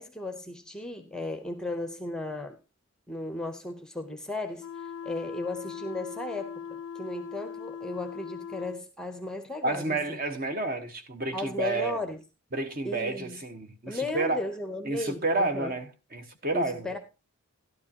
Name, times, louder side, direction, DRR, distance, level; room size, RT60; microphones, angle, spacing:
voice 1, 0.0-2.6 3.1-10.2 11.3-12.2 12.8-13.4 13.9-15.7 16.5-17.0, left 2 dB, 5° left, 0.7 m, -35 dB
sound 1, 4.6-8.8, left 7 dB, 85° left, 0.5 m, -40 dB
voice 2, 9.6-12.0 12.5-14.4 14.8-16.9, right 2 dB, 40° right, 1.2 m, -30 dB
12.5 x 12.0 x 2.9 m
head